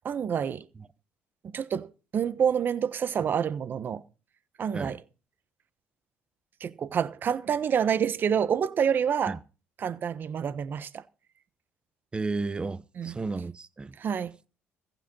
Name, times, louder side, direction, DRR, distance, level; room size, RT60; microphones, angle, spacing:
voice 1, 0.0-0.7 1.4-4.0 4.6-5.0 6.6-9.4 9.8-11.0 13.0-13.1 14.0-14.3, right 7 dB, 45° right, 1.1 m, -28 dB
voice 2, 12.1-14.0, right 3 dB, 20° right, 0.9 m, -33 dB
15.0 x 9.1 x 5.5 m
cardioid pair, 100°, 5 cm